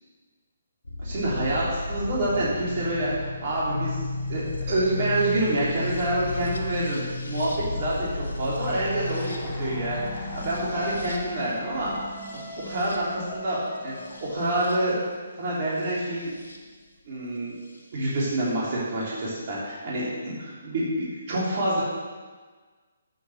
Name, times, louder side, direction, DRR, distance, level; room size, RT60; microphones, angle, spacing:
sound 1, 0.8-16.6 17.7-18.4, left 2 dB, 85° left, 1.5 m, -34 dB
voice 1, 1.0-4.0 4.3-4.4 4.7-11.9 12.3-13.6 13.8-15.0 15.4-16.3 17.1-17.6 17.9-21.8, right 1 dB, 45° right, -7 dB, 3.3 m, -27 dB
sound 2, 8.6-14.7, left 1 dB, 10° left, 1.7 m, -41 dB
8.0 x 6.0 x 6.4 m, 1.4 s
hypercardioid pair, 150°, 0 cm